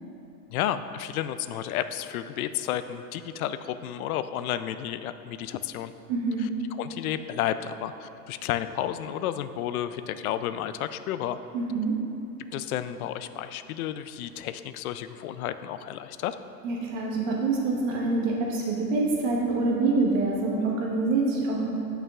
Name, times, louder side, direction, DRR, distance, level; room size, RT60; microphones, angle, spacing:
voice 1, 0.5-5.9 6.8-11.4 12.5-16.4, left 11 dB, 65° left, 12 dB, 0.5 m, -32 dB
voice 2, 6.1-6.5 11.5-11.9 16.6-21.8, right 3 dB, 55° right, -2 dB, 1.4 m, -26 dB
15.0 x 5.7 x 2.4 m, 2.9 s
supercardioid pair, 150°, 48 cm